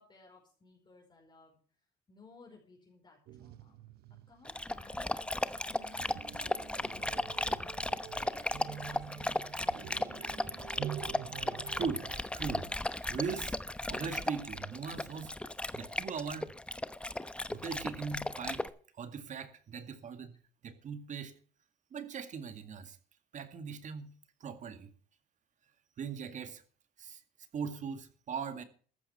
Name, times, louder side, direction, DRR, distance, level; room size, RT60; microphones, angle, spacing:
voice 1, 0.0-1.6 2.1-3.8 4.3-7.9 8.1-10.4, left 3 dB, 25° left, 4.7 m, -58 dB
sound 1, 3.3-12.2, right 11 dB, 70° right, 1.0 m, -47 dB
Dog, 4.5-18.7, left 1 dB, 5° left, 0.9 m, -36 dB
voice 2, 11.3-12.1 12.3-12.7 13.1-13.6 13.9-15.3 15.7-16.5 17.5-18.6 18.9-20.4 20.6-21.3 21.9-23.0 23.3-24.1 24.4-24.9 26.0-26.6 27.0-27.2 27.5-28.6, right 6 dB, 45° right, 2.1 m, -40 dB
14.5 x 11.0 x 4.4 m
cardioid pair, 110°, 17 cm